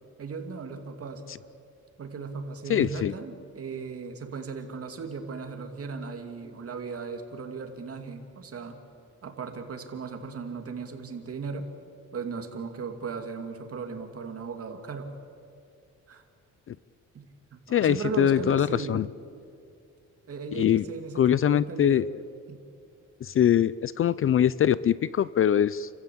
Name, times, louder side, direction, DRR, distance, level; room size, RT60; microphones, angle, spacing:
voice 1, 0.2-1.2 2.0-8.8 9.2-11.6 12.1-15.1 16.1-16.2 17.1-19.0 20.3-22.0 22.5-22.6, right 5 dB, 45° right, 5 dB, 2.7 m, -37 dB
voice 2, 2.7-3.1 16.7-16.8 17.7-19.1 20.5-20.8 21.2-22.0 23.2-25.9, left 10 dB, 45° left, 19 dB, 0.4 m, -23 dB
29.5 x 14.5 x 8.5 m, 2.5 s
cardioid pair, 120°, 31 cm